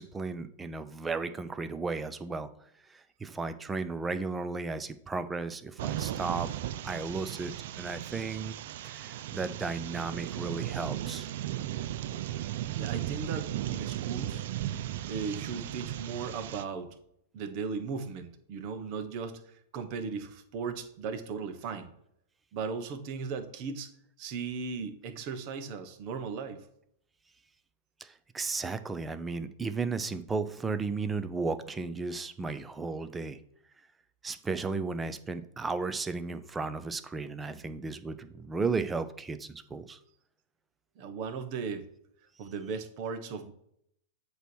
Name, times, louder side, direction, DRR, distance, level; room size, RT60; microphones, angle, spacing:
voice 1, 0.0-2.5 2.9-6.5 6.8-8.6 8.8-11.3 28.0-33.4 34.2-40.0, right 4 dB, 15° right, 11 dB, 0.6 m, -34 dB
sound 1, 5.8-16.6, right 12 dB, 65° right, 0.4 m, -36 dB
voice 2, 12.7-14.4 15.1-17.0 17.3-21.9 22.5-23.9 24.2-26.6 41.0-41.8 42.4-43.5, right 5 dB, 50° right, 8 dB, 1.2 m, -37 dB
8.0 x 3.1 x 6.2 m, 0.72 s
hypercardioid pair, 115°, 0 cm